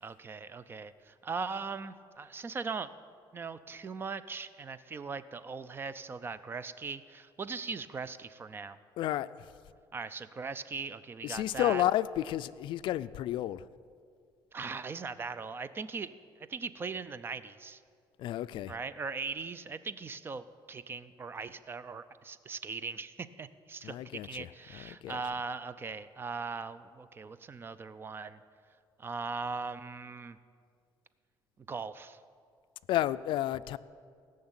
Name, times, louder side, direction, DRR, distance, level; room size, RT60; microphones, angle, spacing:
voice 1, 0.0-2.9 3.3-8.8 9.9-11.8 14.5-16.2 16.5-17.8 18.7-24.0 24.2-28.4 29.0-30.4 31.6-32.2, right 4 dB, 25° right, 14 dB, 0.4 m, -39 dB
voice 2, 9.0-9.3 11.2-13.6 18.2-18.7 23.8-24.5 24.9-25.2 32.9-33.8, left 13 dB, 70° left, 16 dB, 0.4 m, -31 dB
17.5 x 6.5 x 8.8 m, 2.2 s
cardioid pair, 150°, 9 cm